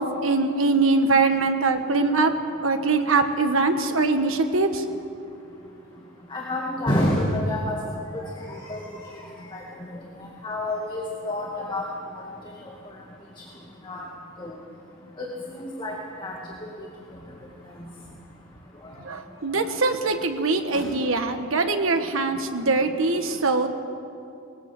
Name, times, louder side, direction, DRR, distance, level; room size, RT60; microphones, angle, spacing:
voice 1, 0.0-2.3 2.6-4.8 19.0-23.7, right 3 dB, 80° right, 6 dB, 1.5 m, -22 dB
voice 2, 6.3-7.8 8.1-8.9 9.5-9.6 9.9-10.0 10.4-11.8 13.8-14.0 14.4-14.5 15.2-15.9 16.2-16.4 17.8-17.9 20.7-20.9, left 1 dB, 25° left, -2 dB, 2.2 m, -28 dB
20.0 x 18.5 x 7.8 m, 2.6 s
head